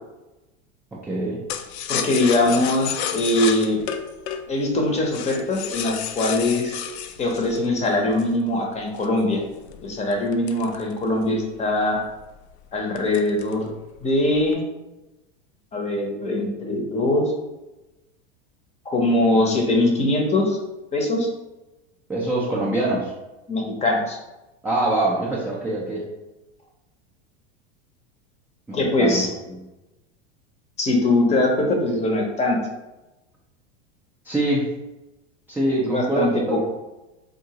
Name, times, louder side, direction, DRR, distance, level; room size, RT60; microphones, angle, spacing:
voice 1, 0.9-1.4 22.1-23.1 24.6-26.0 28.7-29.6 34.2-34.7 35.5-36.6, right 2 dB, 5° right, -6 dB, 0.4 m, -24 dB
sound 1, 1.5-8.4 9.0-11.4 11.8-11.9 12.2-12.5 13.0-13.7 14.0-14.5, left 9 dB, 75° left, 0.5 m, -31 dB
voice 2, 1.9-3.8 4.5-6.7 7.2-9.4 9.8-12.0 12.7-13.7 14.0-14.6 15.7-17.2 18.8-20.6 20.9-21.3 23.5-24.2 28.7-29.3 30.8-32.6 35.8-36.6, left 2 dB, 20° left, 1 dB, 0.7 m, -22 dB
3.7 x 2.6 x 2.8 m, 1.0 s
supercardioid pair, 120°, 32 cm